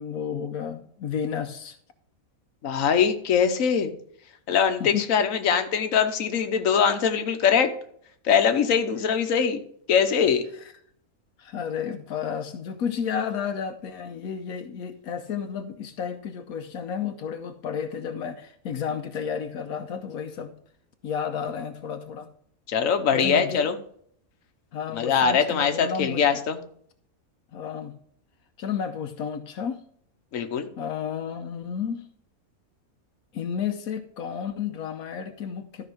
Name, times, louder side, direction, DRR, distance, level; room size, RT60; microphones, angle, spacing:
voice 1, 0.0-1.8 4.8-5.0 11.4-20.5 21.0-22.3 23.1-23.7 24.7-26.4 27.5-28.0 28.6-29.8 30.8-32.0 33.3-35.9, left 7 dB, 85° left, 6 dB, 1.3 m, -32 dB
voice 2, 2.6-3.9 4.5-7.7 8.2-9.6 9.9-10.4 22.7-23.8 24.9-26.6 30.3-30.7, left 7 dB, 70° left, 7 dB, 1.4 m, -22 dB
13.0 x 5.4 x 4.8 m, 0.63 s
omnidirectional pair, 1.5 m